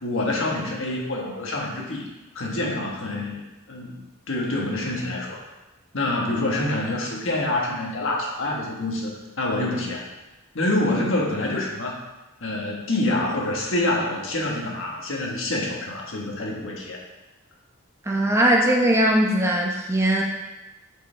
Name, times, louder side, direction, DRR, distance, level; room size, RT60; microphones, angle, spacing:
voice 1, 0.0-2.0 2.3-3.4 3.7-4.0 4.3-5.4 5.9-10.0 10.5-12.0 12.4-17.0, left 2 dB, 65° left, -2 dB, 1.4 m, -26 dB
voice 2, 18.1-20.2, right 1 dB, 15° right, -1 dB, 0.8 m, -20 dB
8.2 x 5.1 x 3.3 m, 1.1 s
head